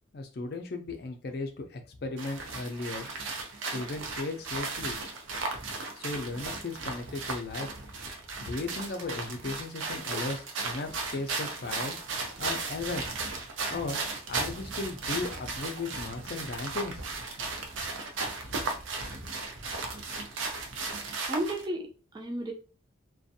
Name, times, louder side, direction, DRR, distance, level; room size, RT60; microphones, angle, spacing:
voice 1, 0.1-3.1 3.7-5.0 6.0-7.7 8.4-12.0 12.4-13.1 13.7-17.0, left 3 dB, 55° left, 4 dB, 0.4 m, -36 dB
sound 1, 2.2-21.6, right 3 dB, 85° right, 0.6 m, -36 dB
voice 2, 21.3-22.5, right 1 dB, 20° right, 1 dB, 0.4 m, -33 dB
2.5 x 2.2 x 2.6 m, 0.35 s
head